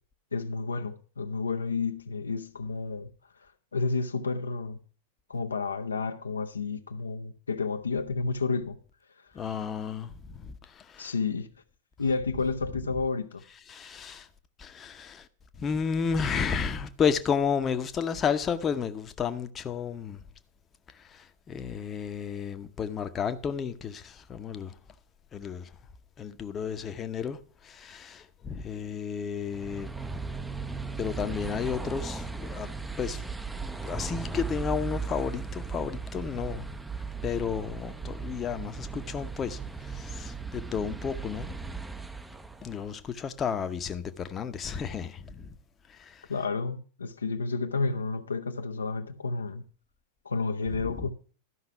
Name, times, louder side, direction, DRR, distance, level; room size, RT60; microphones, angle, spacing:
voice 1, 0.3-3.1 3.4-4.8 5.3-8.8 9.2-9.3 11.0-11.5 12.0-13.4 46.3-49.6 50.2-51.1, left 4 dB, 75° left, 0.6 m, -31 dB
voice 2, 9.3-11.1 13.7-14.3 14.6-15.3 15.6-20.2 20.9-24.8 25.3-25.7 26.2-29.9 31.0-32.7 33.0-33.3 33.8-36.7 37.2-41.6 42.6-45.6 45.9-46.3 50.7-51.1, left 6 dB, 25° left, 0.8 m, -32 dB
sound 1, 29.4-42.9, right 4 dB, 5° right, 0.6 m, -37 dB
12.5 x 5.7 x 5.8 m
figure-of-eight pair, 90°, 0 cm